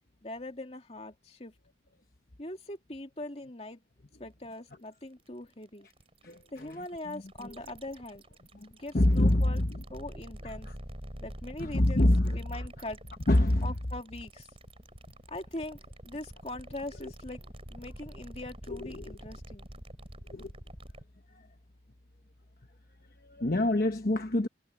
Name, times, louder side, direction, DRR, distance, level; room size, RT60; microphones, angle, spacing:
voice 1, 0.2-1.5 2.4-3.8 4.2-5.9 6.5-8.2 8.7-9.6 9.9-10.7 11.2-13.0 13.6-14.5 15.3-19.7, left 1 dB, 35° left, 2.7 m, -42 dB
sound 1, 4.4-21.0, right 1 dB, 30° right, 5.3 m, -47 dB
voice 2, 6.2-6.8 7.1-7.5 8.5-8.7 8.9-9.8 10.4-10.7 11.6-12.6 13.3-13.7 17.0-17.1 18.7-19.2 20.3-20.5 21.3-21.5 23.2-24.5, left 1 dB, 55° left, 1.1 m, -26 dB
head